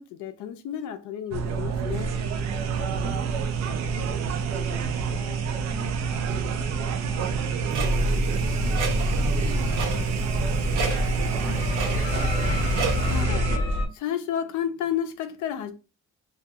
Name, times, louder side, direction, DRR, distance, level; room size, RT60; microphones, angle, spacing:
voice 1, 0.0-2.2 13.0-13.5 13.9-15.7, left 9 dB, 75° left, 0.5 m, -31 dB
sound 1, 1.3-13.6, right 6 dB, 60° right, 0.4 m, -28 dB
voice 2, 3.0-12.8, left 4 dB, 20° left, 0.5 m, -45 dB
Clock, 7.7-13.2, right 4 dB, 80° right, 0.9 m, -34 dB
sound 2, 7.8-13.9, left 2 dB, 45° left, 0.8 m, -27 dB
2.3 x 2.2 x 2.7 m
cardioid pair, 90°, 30 cm